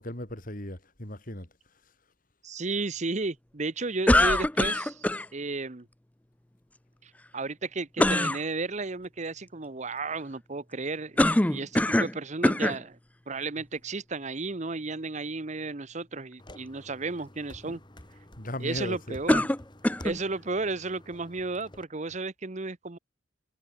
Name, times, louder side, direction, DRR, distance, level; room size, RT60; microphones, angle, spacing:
voice 1, 0.0-1.5 17.6-17.8 18.4-19.2 22.1-22.2, left 1 dB, 45° left, 3.5 m, -37 dB
voice 2, 2.4-5.1 5.3-5.9 7.0-13.0 13.3-17.8 18.6-19.5 20.0-23.0, right 3 dB, 35° right, 0.9 m, -33 dB
sound 1, 4.1-5.3 8.0-8.4 11.2-12.2 12.4-12.8 13.6-13.7 19.3-20.2, left 1 dB, 5° left, 0.5 m, -23 dB
sound 2, 16.4-21.8, left 1 dB, 25° left, 3.9 m, -50 dB
head